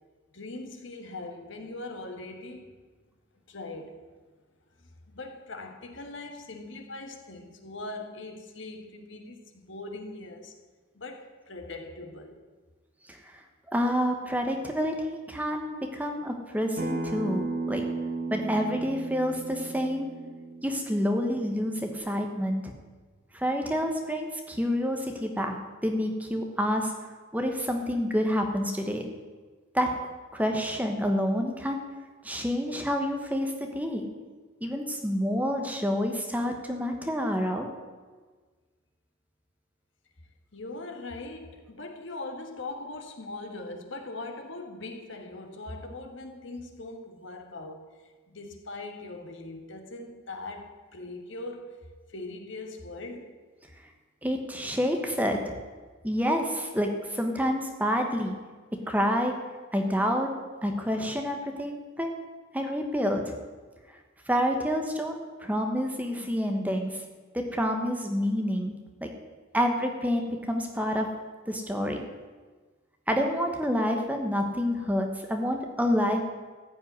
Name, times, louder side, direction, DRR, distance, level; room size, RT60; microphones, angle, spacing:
voice 1, 0.3-2.7 3.5-4.0 4.8-4.9 5.1-10.6 10.9-12.4 40.5-51.8 52.1-53.4, left 2 dB, 60° left, 4 dB, 1.6 m, -41 dB
voice 2, 13.1-13.4 13.7-17.8 18.3-20.1 20.6-22.7 23.3-25.6 25.8-26.9 27.3-29.1 29.7-29.9 30.3-31.8 32.2-34.1 34.6-37.7 54.2-55.6 56.0-58.3 58.7-59.3 59.7-60.3 60.6-62.2 62.5-63.3 64.3-67.0 67.3-69.1 69.5-71.1 71.5-72.0 73.1-76.2, equal, 5° right, 3 dB, 1.1 m, -28 dB
Acoustic guitar, 16.8-22.0, right 3 dB, 40° right, 1.3 m, -35 dB
14.5 x 5.5 x 9.6 m, 1.4 s
head